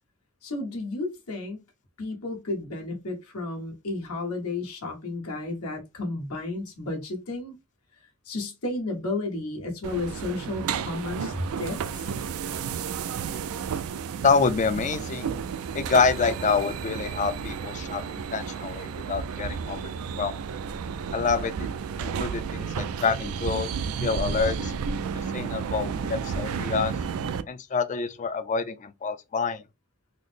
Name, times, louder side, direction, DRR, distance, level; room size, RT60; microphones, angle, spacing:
voice 1, 0.4-1.6 2.0-7.6 8.2-12.1, left 2 dB, 75° left, 1.2 m, -32 dB
sound 1, 9.8-27.4, right 6 dB, 70° right, 0.4 m, -32 dB
voice 2, 14.2-15.3 15.7-18.0 18.3-19.9 20.2-20.4 21.1-21.7 22.0-23.7 24.0-24.7 25.3-26.9 27.5-29.6, left 5 dB, 35° left, 0.4 m, -27 dB
4.0 x 2.0 x 3.3 m
head